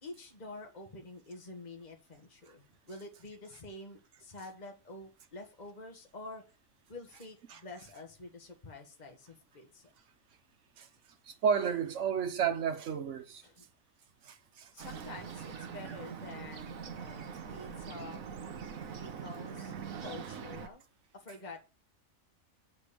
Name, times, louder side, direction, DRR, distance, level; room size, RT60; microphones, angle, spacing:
voice 1, 0.0-6.4 6.9-9.9 13.4-13.7 14.7-18.3 19.0-20.8 21.1-21.6, left 2 dB, 30° left, 1.8 m, -48 dB
voice 2, 11.3-13.4 14.2-14.9, right 7 dB, 60° right, 1.4 m, -32 dB
Bird, 14.8-20.7, right 7 dB, 80° right, 1.4 m, -43 dB
8.2 x 4.4 x 6.9 m
omnidirectional pair, 1.4 m